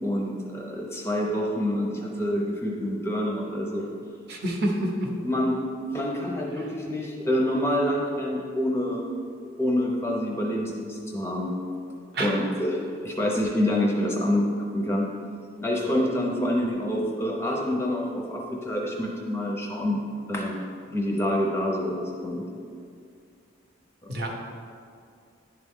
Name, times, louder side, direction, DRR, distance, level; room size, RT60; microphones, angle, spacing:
voice 1, 0.0-3.9 5.1-5.5 5.9-9.0 9.6-11.5 12.2-15.1 15.6-20.6 20.9-22.5 24.0-24.2, left 1 dB, 15° left, -1 dB, 0.6 m, -27 dB
voice 2, 4.3-5.1 12.1-12.3 24.1-24.3, right 1 dB, 50° right, 0 dB, 0.9 m, -27 dB
10.5 x 3.6 x 3.6 m, 2.3 s
head